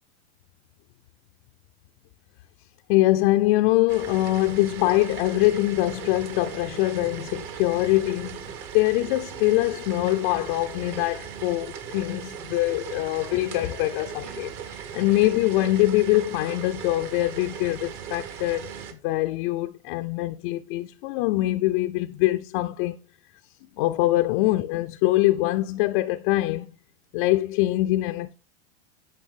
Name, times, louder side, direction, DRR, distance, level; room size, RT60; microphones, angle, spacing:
voice 1, 2.9-8.5 8.7-18.7 19.0-22.9 23.8-26.7 27.1-28.3, left 17 dB, 50° left, 0.5 m, -23 dB
sound 1, 3.9-18.9, right 8 dB, 45° right, 1.4 m, -38 dB
9.3 x 5.4 x 3.7 m
hypercardioid pair, 120°, 33 cm